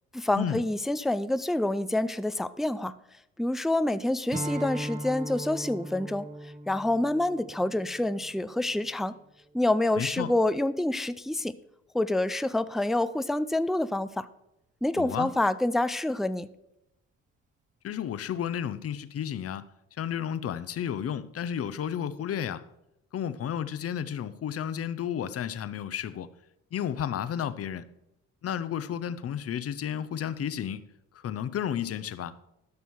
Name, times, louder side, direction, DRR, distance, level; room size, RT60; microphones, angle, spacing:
voice 1, 0.1-2.9 3.4-9.1 9.5-11.5 11.9-14.3 14.8-16.5, left 1 dB, ahead, 0.3 m, -27 dB
Strum, 4.3-9.0, right 1 dB, 25° right, 1.0 m, -38 dB
voice 2, 10.0-10.3 15.0-15.3 17.8-19.7 20.0-22.6 23.1-26.3 26.7-27.8 28.4-30.8 31.1-32.3, left 9 dB, 50° left, 0.7 m, -32 dB
12.5 x 6.2 x 4.7 m
cardioid pair, 90°, 30 cm